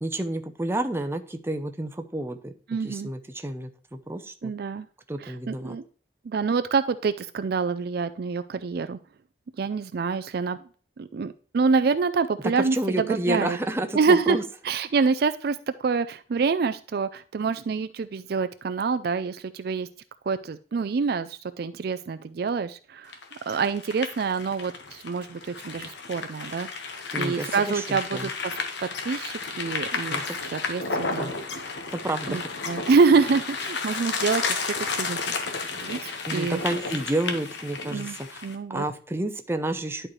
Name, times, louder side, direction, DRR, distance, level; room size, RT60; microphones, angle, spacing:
voice 1, 0.0-2.5 2.8-4.5 5.1-5.8 12.6-14.4 27.1-28.3 30.1-30.2 31.1-31.3 31.9-32.5 36.3-38.4 38.7-40.1, right 1 dB, 15° right, 8 dB, 0.6 m, -30 dB
voice 2, 2.7-3.1 4.4-4.9 5.2-5.8 6.2-9.0 9.6-10.6 11.0-13.6 13.9-14.4 14.6-19.9 20.3-23.1 23.5-26.7 27.2-28.3 29.0-30.2 30.5-31.3 32.3-32.4 32.7-35.3 35.8-36.6 37.9-38.2 38.4-38.8, right 5 dB, 55° right, 12 dB, 0.4 m, -26 dB
sound 1, 23.1-38.5, left 4 dB, 70° left, 1.2 m, -32 dB
11.0 x 4.5 x 3.1 m, 0.42 s
head